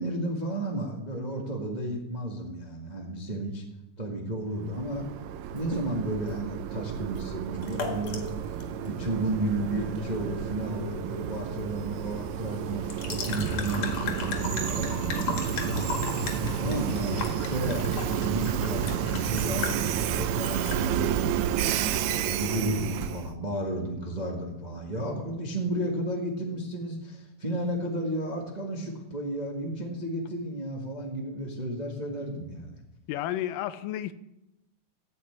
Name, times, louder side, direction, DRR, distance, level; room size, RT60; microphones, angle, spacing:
voice 1, 0.0-3.6 4.0-5.1 5.5-8.3 8.8-15.8 16.6-21.9 22.2-32.8, right 1 dB, 25° right, -1 dB, 0.9 m, -33 dB
Train, 4.5-23.3, right 10 dB, 80° right, 1.8 m, -31 dB
sound 1, 7.6-22.7, left 4 dB, 60° left, 2.6 m, -37 dB
voice 2, 33.1-34.1, left 13 dB, 85° left, 13 dB, 2.2 m, -31 dB
15.5 x 5.9 x 8.7 m, 0.91 s
omnidirectional pair, 3.8 m